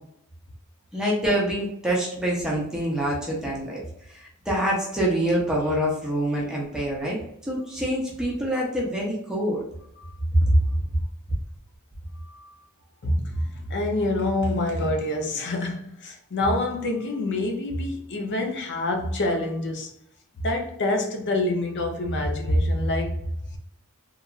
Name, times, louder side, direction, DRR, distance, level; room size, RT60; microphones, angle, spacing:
voice 1, 0.9-3.8 4.1-7.2 7.4-9.6 10.3-10.6, right 1 dB, 5° right, -4 dB, 0.6 m, -25 dB
voice 2, 12.2-12.6 13.0-19.9 20.4-23.2, left 1 dB, 55° left, 3 dB, 0.5 m, -26 dB
2.9 x 2.4 x 2.3 m, 0.75 s
head